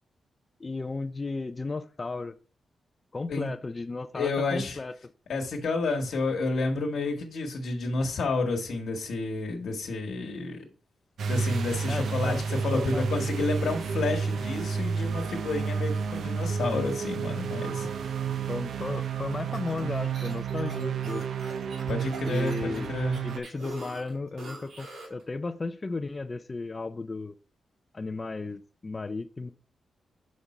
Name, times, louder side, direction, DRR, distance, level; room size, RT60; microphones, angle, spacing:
voice 1, 0.6-2.3 3.1-4.9 11.9-12.4 12.7-13.1 17.8-17.9 18.5-21.3 22.2-22.9 23.2-27.3 27.9-29.5, left 3 dB, 25° left, 0.4 m, -34 dB
voice 2, 4.1-4.8 5.3-10.6 11.3-17.9 21.9-23.2, left 3 dB, 70° left, 1.2 m, -30 dB
sound 1, 11.2-23.4, right 6 dB, 70° right, 0.5 m, -31 dB
sound 2, 19.3-25.2, right 2 dB, 85° right, 2.4 m, -44 dB
6.0 x 5.2 x 4.1 m
wide cardioid pair, 150°, 0 cm